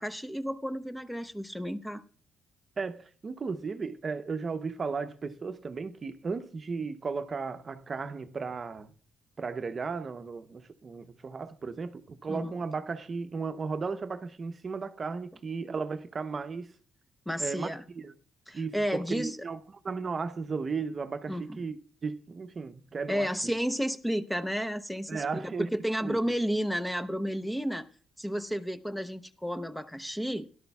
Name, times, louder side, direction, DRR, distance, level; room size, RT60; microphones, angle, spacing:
voice 1, 0.0-2.0 12.3-12.5 17.3-17.8 18.5-19.4 21.3-21.6 23.1-27.9 28.2-30.5, equal, 5° left, 0.7 m, -32 dB
voice 2, 2.8-8.9 9.4-16.7 17.4-17.7 18.0-18.1 18.5-21.8 22.0-23.5 25.1-25.7 26.0-26.2, right 4 dB, 40° right, 0.7 m, -35 dB
17.0 x 11.5 x 2.3 m
cardioid pair, 90°, 0 cm